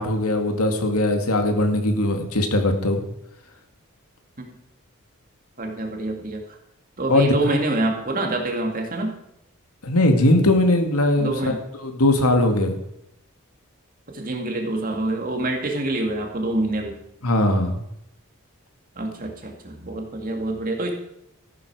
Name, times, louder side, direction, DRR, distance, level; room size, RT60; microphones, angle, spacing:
voice 1, 0.0-3.0 7.1-7.6 9.8-11.5 11.8-12.8 17.2-17.8, left 1 dB, 85° left, 5 dB, 2.0 m, -20 dB
voice 2, 5.6-6.4 7.0-9.1 11.2-11.6 14.1-16.9 19.0-20.9, right 2 dB, 40° right, 2 dB, 2.2 m, -26 dB
14.5 x 11.0 x 4.8 m, 0.80 s
head